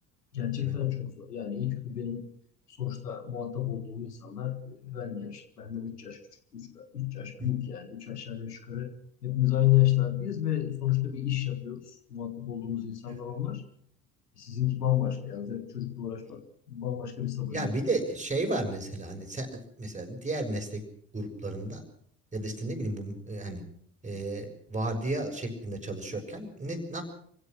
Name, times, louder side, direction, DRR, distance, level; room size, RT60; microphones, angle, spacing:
voice 1, 0.3-2.3 2.8-6.2 6.5-8.9 9.2-11.8 12.1-13.6 14.4-17.7, left 13 dB, 85° left, 9 dB, 1.8 m, -31 dB
voice 2, 17.5-20.8 21.1-21.8 22.3-23.6 24.0-27.0, right 2 dB, 15° right, 2 dB, 6.4 m, -33 dB
26.0 x 16.5 x 6.1 m, 0.64 s
figure-of-eight pair, 60°, 46 cm